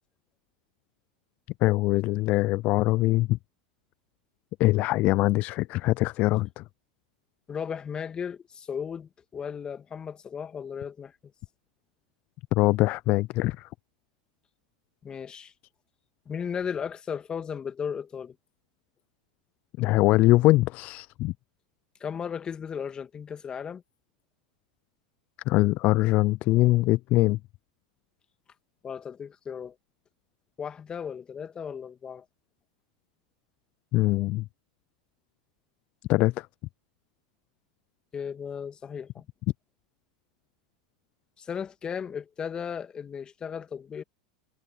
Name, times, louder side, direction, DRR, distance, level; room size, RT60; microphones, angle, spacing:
voice 1, 1.6-3.4 4.6-6.6 12.5-13.7 19.8-21.3 25.5-27.4 33.9-34.4 36.1-36.5, left 19 dB, 50° left, 0.4 m, -23 dB
voice 2, 7.5-11.1 15.0-15.5 16.3-18.4 22.0-23.8 28.8-29.8 30.6-32.2 38.1-39.3 41.4-44.0, left 7 dB, 25° left, 2.3 m, -35 dB
hypercardioid pair, 90°, 3 cm